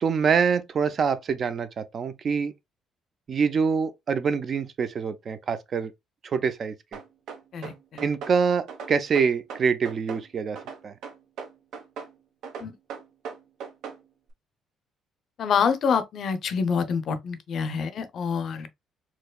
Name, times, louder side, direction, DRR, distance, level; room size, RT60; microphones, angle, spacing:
voice 1, 0.0-2.5 3.3-5.9 6.2-6.7 8.0-10.6 10.8-10.9, right 6 dB, 35° right, 0.4 m, -25 dB
sound 1, 6.9-8.4 8.7-10.3 10.6-12.1 12.4-14.0, right 6 dB, 70° right, 1.1 m, -38 dB
voice 2, 7.5-8.1 12.6-12.7 15.4-18.7, left 6 dB, 45° left, 0.5 m, -26 dB
4.4 x 2.9 x 2.3 m
cardioid pair, 165°, 0 cm